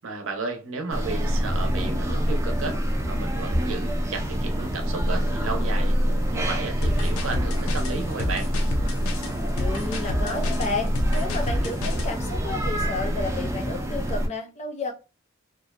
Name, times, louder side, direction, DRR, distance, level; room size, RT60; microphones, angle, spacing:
voice 1, 0.0-6.0 6.3-8.5, right 4 dB, 70° right, 0.7 m, -33 dB
sound 1, 0.9-14.3, equal, 15° right, 0.3 m, -26 dB
sound 2, 4.1-9.1, right 1 dB, 30° right, 0.7 m, -45 dB
sound 3, 6.8-12.1, left 2 dB, 90° left, 0.4 m, -30 dB
voice 2, 9.6-14.9, left 3 dB, 35° left, 0.5 m, -32 dB
2.5 x 2.1 x 2.4 m
head